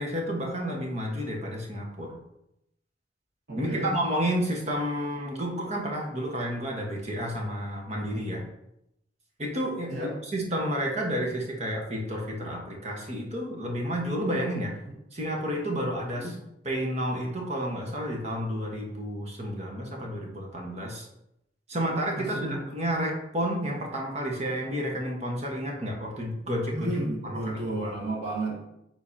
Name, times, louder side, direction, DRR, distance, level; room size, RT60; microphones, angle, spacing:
voice 1, 0.0-2.2 3.6-8.4 9.4-9.9 10.2-14.8 15.1-16.3 16.6-21.1 21.7-26.9 27.2-27.9, equal, 40° right, -1 dB, 1.3 m, -31 dB
voice 2, 3.5-4.0 9.9-10.1 16.1-16.2 22.1-22.6 26.7-28.7, right 2 dB, 75° right, -3 dB, 2.1 m, -32 dB
9.6 x 3.8 x 2.8 m, 0.83 s
head